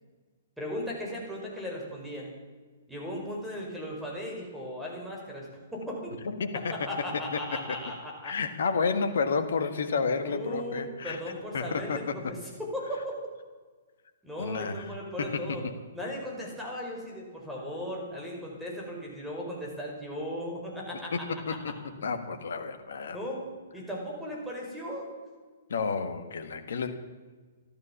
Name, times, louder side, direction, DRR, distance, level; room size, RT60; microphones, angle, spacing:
voice 1, 0.6-2.3 2.9-6.1 6.7-8.3 10.2-13.2 14.2-15.6 15.9-21.2 23.1-23.4 23.7-25.1, equal, 5° right, -2 dB, 5.0 m, -37 dB
voice 2, 6.2-6.9 7.3-7.4 7.7-7.8 8.2-11.2 11.5-12.3 14.4-14.9 15.2-15.7 21.1-21.7 22.0-23.2 25.7-27.0, left 5 dB, 65° left, 8 dB, 1.5 m, -31 dB
14.0 x 12.5 x 7.2 m, 1.4 s
figure-of-eight pair, 120°, 0 cm